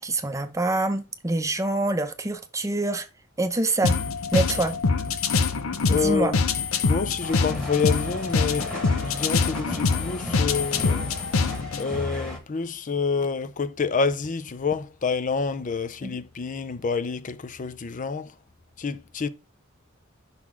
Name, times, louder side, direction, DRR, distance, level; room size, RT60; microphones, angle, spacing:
voice 1, 0.0-3.1 3.4-3.9 4.3-4.7 5.9-6.3 16.0-16.2, right 2 dB, 15° right, 0.7 m, -25 dB
sound 1, 3.8-11.8, left 4 dB, 75° left, 0.7 m, -25 dB
voice 2, 5.9-6.4 6.8-8.7 9.0-11.1 11.8-18.3 18.8-19.3, left 5 dB, 40° left, 0.5 m, -28 dB
sound 2, 7.2-12.4, left 1 dB, 5° left, 1.4 m, -37 dB
5.9 x 3.9 x 4.8 m
head